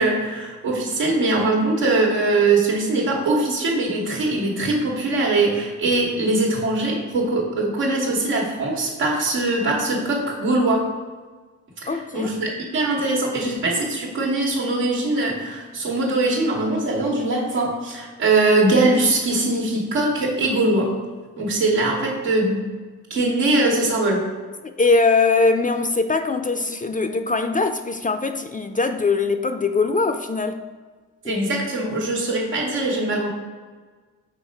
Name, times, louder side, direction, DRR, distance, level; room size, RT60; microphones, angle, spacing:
voice 1, 0.0-10.9 11.8-20.9 21.4-22.7 23.1-24.2 31.3-33.3, right 2 dB, 90° right, 1.4 m, -21 dB
voice 2, 11.9-12.3 24.8-30.6 31.2-31.4, left 3 dB, 20° left, 0.4 m, -21 dB
5.8 x 3.7 x 4.5 m
hypercardioid pair, 40°, 42 cm